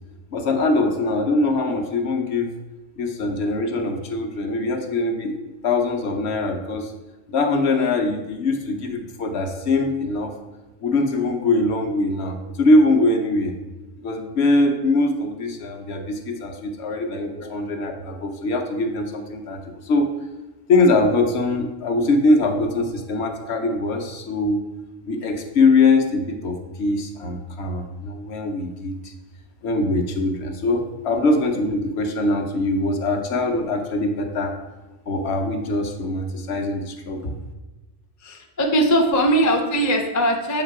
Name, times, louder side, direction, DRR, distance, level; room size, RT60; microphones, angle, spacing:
voice 1, 0.3-2.5 3.0-5.4 5.6-6.9 7.3-10.3 10.8-13.5 14.0-20.1 20.7-24.6 25.1-29.1 29.6-34.5 35.1-37.3, left 2 dB, 65° left, 4 dB, 0.9 m, -22 dB
voice 2, 38.2-40.6, right 1 dB, 25° left, 2 dB, 0.4 m, -20 dB
7.1 x 2.9 x 4.6 m, 1.1 s
omnidirectional pair, 1.3 m